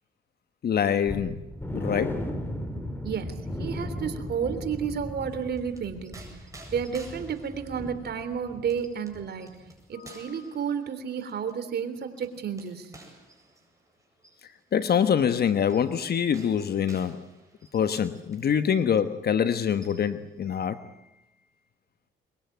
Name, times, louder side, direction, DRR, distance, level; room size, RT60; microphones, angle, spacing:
voice 1, 0.6-1.4 1.7-2.3 10.0-10.1 14.7-17.2 17.7-20.8, left 8 dB, 55° left, 1.2 m, -25 dB
sound 1, 1.1-8.8 9.1-9.3 9.7-9.8, left 1 dB, 10° left, 3.8 m, -36 dB
voice 2, 3.0-6.2 6.7-9.6 9.9-12.9, right 7 dB, 55° right, 3.5 m, -31 dB
sound 2, 5.4-18.7 19.0-19.1 19.5-20.3, right 2 dB, 15° right, 7.9 m, -54 dB
23.5 x 22.0 x 9.3 m
cardioid pair, 90°, 20 cm